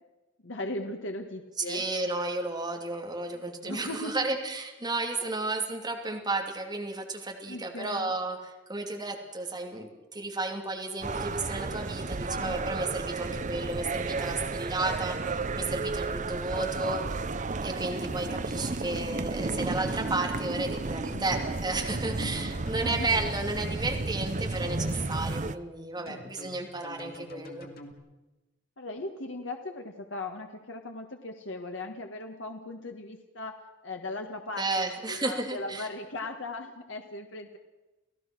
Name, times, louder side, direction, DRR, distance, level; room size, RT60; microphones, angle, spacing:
voice 1, 0.4-1.8 3.3-4.2 5.2-5.3 7.5-8.1 12.3-12.6 16.3-16.7 21.1-21.3 22.1-22.4 22.8-23.3 26.0-26.3 28.8-33.6 33.8-34.7 35.1-37.6, left 2 dB, 75° left, 4 dB, 1.7 m, -38 dB
voice 2, 1.7-27.7 34.6-35.9, right 2 dB, 20° right, 2 dB, 2.8 m, -33 dB
sound 1, 11.0-25.5, right 3 dB, 40° right, 0.7 m, -33 dB
sound 2, 18.0-19.1 19.6-20.2 21.1-24.1 24.5-25.2 26.1-27.9, equal, 50° left, 2.5 m, -46 dB
30.0 x 17.0 x 6.2 m, 1.1 s
head